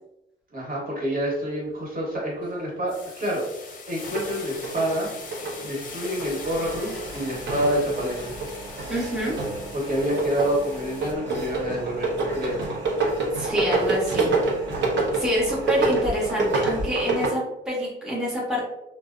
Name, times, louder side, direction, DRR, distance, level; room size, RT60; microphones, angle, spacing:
voice 1, 0.5-5.1 5.6-8.3 9.7-12.6, equal, 45° right, -3 dB, 1.1 m, -28 dB
sound 1, 1.4-1.7 2.1-11.1, left 4 dB, 45° left, 0.5 m, -41 dB
sound 2, 4.0-17.3, right 3 dB, 65° right, 0.7 m, -27 dB
voice 2, 8.9-9.3 13.3-14.3 15.1-18.6, equal, 5° right, -5 dB, 0.6 m, -27 dB
2.6 x 2.0 x 2.3 m, 0.88 s
cardioid pair, 90°, 20 cm